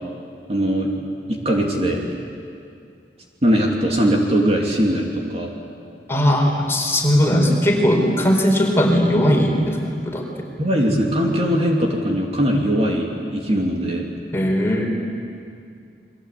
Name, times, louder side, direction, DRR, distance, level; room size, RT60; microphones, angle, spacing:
voice 1, 0.5-0.9 1.3-2.0 3.4-5.5 10.6-14.1, equal, 35° right, 0 dB, 2.8 m, -20 dB
voice 2, 6.1-10.2 14.3-14.8, equal, 15° left, 0 dB, 4.2 m, -18 dB
30.0 x 22.5 x 8.5 m, 2.3 s
head